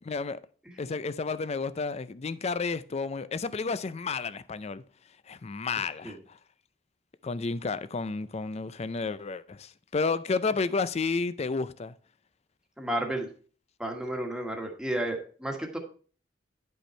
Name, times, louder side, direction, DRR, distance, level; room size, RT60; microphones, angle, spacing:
voice 1, 0.0-0.4 0.8-4.8 5.3-6.4 7.2-11.9, left 4 dB, 35° left, 0.4 m, -31 dB
voice 2, 12.8-13.3 13.8-15.8, right 1 dB, 5° right, 1.5 m, -32 dB
10.0 x 5.4 x 4.3 m
head